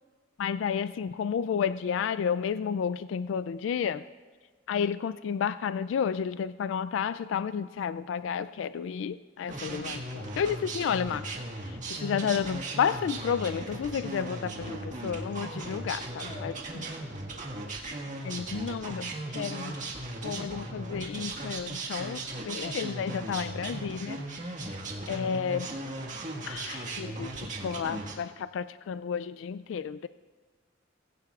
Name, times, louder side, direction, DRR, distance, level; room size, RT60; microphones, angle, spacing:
voice 1, 0.4-4.0 4.7-11.2 11.6-16.5 18.2-19.8 20.2-24.5 25.1-25.8 26.4-30.1, left 7 dB, 70° left, 14 dB, 0.3 m, -31 dB
sound 1, 9.5-28.1, right 2 dB, 40° right, 1.7 m, -37 dB
voice 2, 9.6-10.1 15.9-17.7, left 2 dB, 30° left, -1 dB, 4.1 m, -50 dB
20.5 x 16.0 x 2.4 m, 1.4 s
head